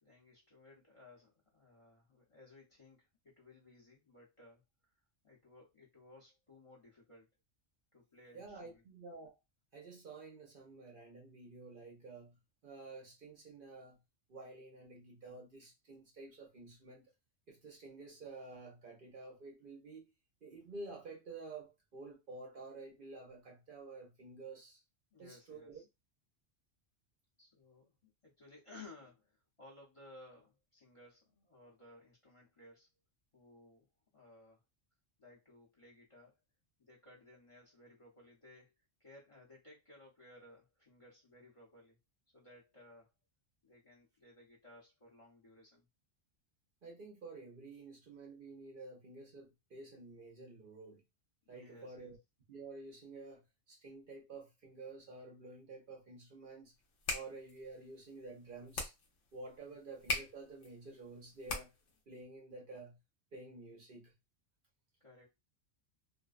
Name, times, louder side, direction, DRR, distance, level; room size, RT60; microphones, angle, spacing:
voice 1, 0.0-4.6 5.2-7.3 7.9-8.8 25.1-25.8 27.4-32.9 33.3-33.9 34.1-34.6 35.2-36.3 36.8-38.7 39.0-42.0 42.3-43.1 43.6-45.8 51.5-52.1 59.7-59.8 65.0-65.3, left 2 dB, 30° left, 0.8 m, -59 dB
voice 2, 8.3-9.4 9.7-14.0 14.3-17.1 17.5-20.1 20.4-24.8 25.2-25.8 46.8-51.0 51.5-52.2 52.5-56.7 57.1-58.9 59.3-61.7 62.1-63.0 63.3-64.1, right 3 dB, 55° right, 0.8 m, -51 dB
sound 1, 56.8-62.0, left 2 dB, 85° left, 1.0 m, -42 dB
2.5 x 2.1 x 2.3 m
omnidirectional pair, 1.2 m